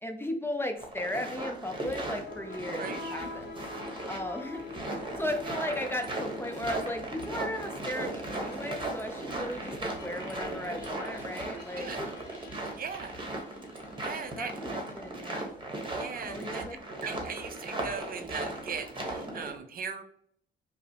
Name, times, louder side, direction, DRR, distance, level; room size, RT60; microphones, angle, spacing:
voice 1, 0.0-3.6 4.1-4.7 5.2-12.1 14.4-15.5 16.3-16.8, left 1 dB, 10° left, 5 dB, 0.5 m, -36 dB
sound 1, 0.8-19.5, right 2 dB, 25° right, 1.0 m, -37 dB
sound 2, 1.9-14.2, left 3 dB, 55° left, 0.9 m, -46 dB
voice 2, 11.5-12.0 12.8-13.1 14.0-14.5 16.0-16.7 17.0-20.0, right 6 dB, 45° right, 8 dB, 0.5 m, -39 dB
5.1 x 2.0 x 2.8 m, 0.66 s
cardioid pair, 90°, 20 cm